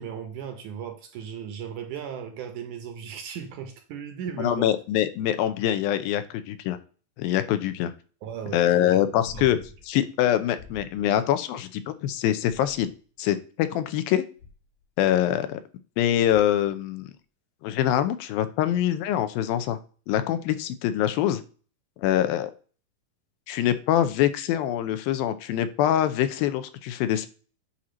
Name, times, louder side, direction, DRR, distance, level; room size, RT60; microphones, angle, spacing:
voice 1, 0.0-4.7 8.2-9.0 9.3-9.5, right 8 dB, 70° right, 2.0 m, -36 dB
voice 2, 4.4-6.8 7.2-7.9 8.5-9.6 9.9-12.9 13.2-14.2 15.0-15.6 16.0-17.1 17.6-19.8 20.1-21.4 22.0-22.5 23.5-27.3, left 11 dB, 85° left, 2.5 m, -24 dB
sound 1, 9.3-9.9 10.6-11.1 12.4-13.2 14.4-14.8 16.3-16.7 19.1-19.2, left 4 dB, 70° left, 1.6 m, -46 dB
8.5 x 2.9 x 6.2 m
omnidirectional pair, 4.1 m